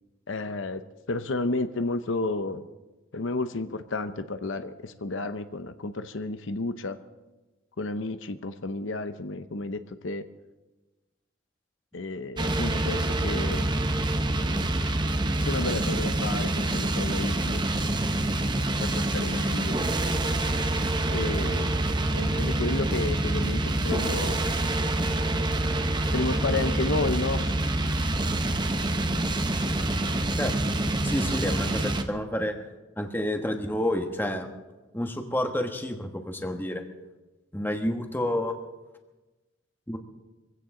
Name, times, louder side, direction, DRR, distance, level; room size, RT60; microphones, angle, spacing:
voice 1, 0.3-0.8 1.1-2.6 3.1-7.0 7.8-10.3 11.9-13.7 15.3-17.6 18.8-19.8 21.1-21.7 22.1-24.4 26.1-27.5 30.8-30.9, left 2 dB, 75° left, 10 dB, 0.8 m, -31 dB
sound 1, 12.4-32.0, right 1 dB, 20° right, 0.9 m, -26 dB
voice 2, 30.3-30.7 31.0-32.5 33.0-34.5 34.9-36.8 37.5-38.5 39.9-40.0, left 1 dB, 10° left, 4 dB, 1.3 m, -29 dB
23.0 x 16.5 x 3.8 m, 1.1 s
head